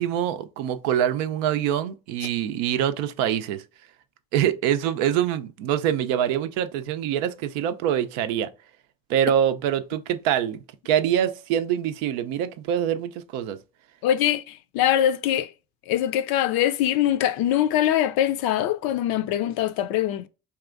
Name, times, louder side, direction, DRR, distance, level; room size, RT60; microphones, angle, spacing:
voice 1, 0.0-3.6 4.3-8.5 9.1-10.6 10.9-13.6, right 10 dB, 80° right, 0.5 m, -24 dB
voice 2, 14.0-15.5 15.9-20.3, left 11 dB, 65° left, 0.5 m, -23 dB
3.5 x 2.9 x 2.4 m
hypercardioid pair, 55°, 39 cm